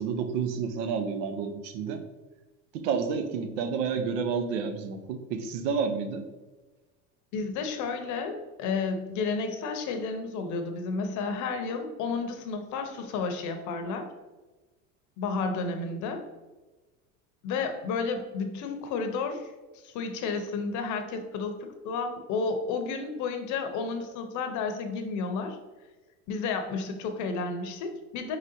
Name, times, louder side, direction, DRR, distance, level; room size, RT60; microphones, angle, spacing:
voice 1, 0.0-2.0 2.7-6.2, right 6 dB, 70° right, 8 dB, 0.7 m, -30 dB
voice 2, 7.3-14.0 15.2-16.2 17.4-19.5 19.8-25.6 26.3-28.4, left 4 dB, 50° left, 6 dB, 0.8 m, -31 dB
4.8 x 3.9 x 2.7 m, 1.2 s
supercardioid pair, 105°, 37 cm